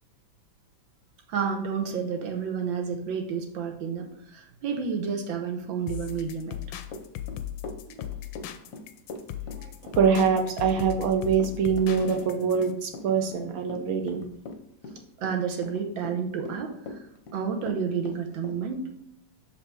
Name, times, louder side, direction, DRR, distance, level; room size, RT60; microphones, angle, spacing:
voice 1, 1.3-6.6 7.9-8.0 15.2-17.0 17.3-18.9, right 6 dB, 80° right, 4 dB, 1.6 m, -30 dB
sound 1, 5.9-12.7, left 11 dB, 80° left, 1.3 m, -38 dB
Run / Walk footsteps, 6.9-18.6, left 3 dB, 60° left, 0.9 m, -40 dB
voice 2, 9.9-14.2, right 6 dB, 60° right, 5 dB, 0.9 m, -24 dB
6.2 x 4.5 x 4.5 m, 0.74 s
omnidirectional pair, 2.1 m